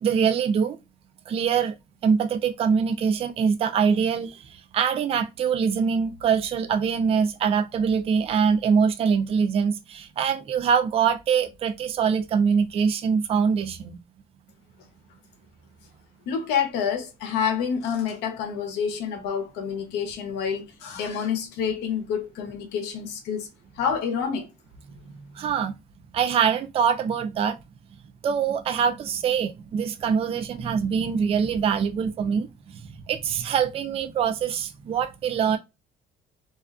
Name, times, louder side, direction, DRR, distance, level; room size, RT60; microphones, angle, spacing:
voice 1, 0.0-0.8 1.3-1.7 2.0-14.0 25.0-25.7 26.1-27.6 28.2-35.6, right 6 dB, 35° right, 0.3 m, -24 dB
voice 2, 16.3-23.5 23.8-24.5, left 7 dB, 90° left, 0.7 m, -28 dB
2.4 x 2.2 x 2.3 m
cardioid pair, 110°, 17 cm